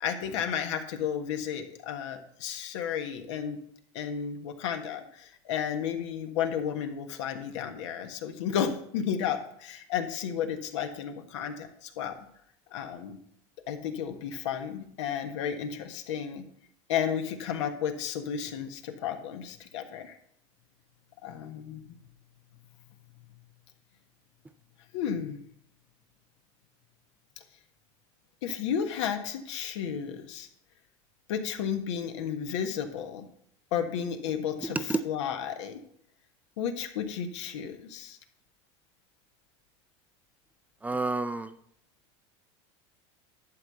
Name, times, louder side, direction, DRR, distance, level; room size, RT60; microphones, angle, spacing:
voice 1, 0.0-3.6 3.9-12.2 12.7-13.2 13.7-16.5 16.9-20.2 21.2-22.0 24.9-25.4 28.4-30.5 31.3-33.3 33.7-35.8 36.6-38.2, left 8 dB, 85° left, 6 dB, 1.4 m, -33 dB
voice 2, 34.6-35.0 40.8-41.5, right 3 dB, 10° right, 12 dB, 0.5 m, -29 dB
11.5 x 4.0 x 7.9 m, 0.68 s
supercardioid pair, 120°, 15 cm